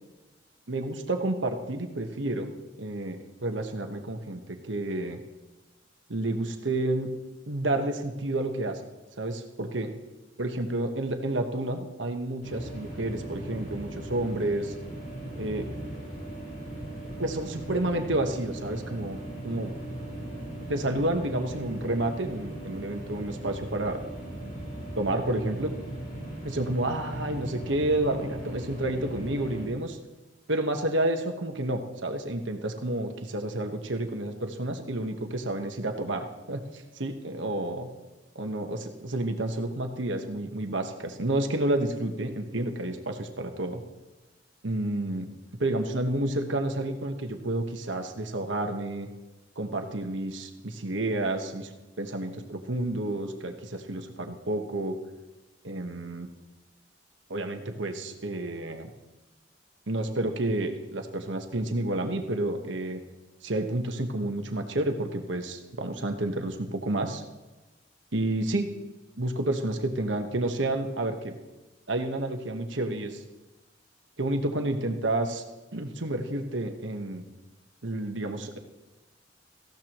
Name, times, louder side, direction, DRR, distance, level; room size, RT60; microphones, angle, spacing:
voice 1, 0.7-2.5 2.8-5.2 6.1-7.1 7.5-8.8 9.2-9.9 10.4-14.7 15.3-15.7 17.2-19.2 19.4-19.7 20.7-24.0 25.0-25.7 26.4-30.0 30.5-36.6 36.9-37.9 38.3-38.8 39.0-43.8 44.6-45.3 45.6-49.1 49.6-51.7 52.0-55.0 55.6-56.3 57.3-58.9 59.9-63.0 63.4-67.2 68.1-68.7 69.2-71.4 71.9-73.2 74.2-75.4 75.7-77.2 77.8-78.6, right 1 dB, 85° right, 5 dB, 1.3 m, -30 dB
sound 1, 12.4-29.7, right 1 dB, 50° left, 4.8 m, -38 dB
18.0 x 15.0 x 3.1 m, 1.1 s
head